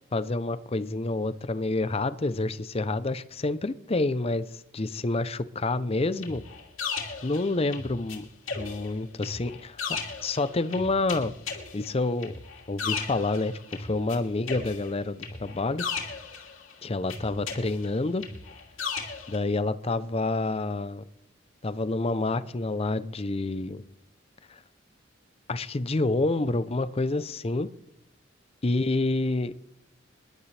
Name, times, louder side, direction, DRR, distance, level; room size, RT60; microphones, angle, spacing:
voice 1, 0.1-6.4 7.2-8.3 8.6-9.8 10.2-11.3 11.7-12.4 12.7-15.8 16.8-18.2 19.3-21.0 21.6-23.8 24.5-24.6 25.5-27.7 28.6-29.5, left 2 dB, 30° left, 14 dB, 0.6 m, -28 dB
sound 1, 6.2-8.2 8.5-14.2 14.5-16.7 17.1-19.4, left 5 dB, 85° left, 2.9 m, -36 dB
26.5 x 11.5 x 3.3 m, 0.83 s
head